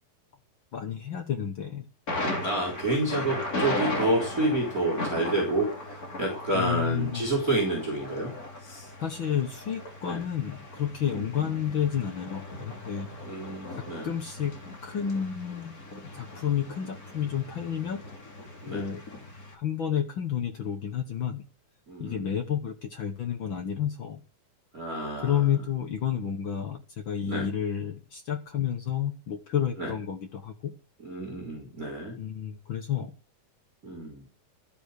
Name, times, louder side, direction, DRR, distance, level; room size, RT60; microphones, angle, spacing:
voice 1, 0.7-1.9 6.5-7.3 9.0-13.1 13.7-14.5 14.8-15.8 16.1-18.0 18.6-19.0 19.5-21.4 22.0-24.2 25.2-30.7 32.2-33.1, left 9 dB, 75° left, 6 dB, 1.1 m, -30 dB
Thunder, 2.1-19.5, left 1 dB, 30° left, 2.7 m, -37 dB
voice 2, 2.4-8.3 8.6-8.9 10.0-10.2 11.1-11.2 13.3-14.1 18.6-18.9 21.9-22.3 24.7-25.5 27.3-27.5 29.8-29.9 31.0-32.2 33.8-34.2, right 1 dB, 25° right, -3 dB, 4.1 m, -29 dB
13.5 x 8.1 x 6.6 m, 0.35 s
omnidirectional pair, 4.0 m